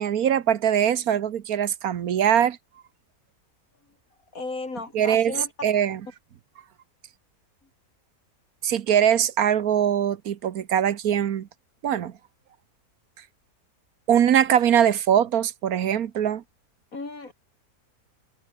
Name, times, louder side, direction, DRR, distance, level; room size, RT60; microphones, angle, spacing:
voice 1, 0.0-2.6 4.9-5.3 5.6-6.0 8.6-11.5 11.8-12.1 14.1-16.4, right 9 dB, 70° right, 1.4 m, -22 dB
voice 2, 4.3-5.5 16.9-17.3, left 3 dB, 65° left, 4.2 m, -34 dB
omnidirectional pair, 1.6 m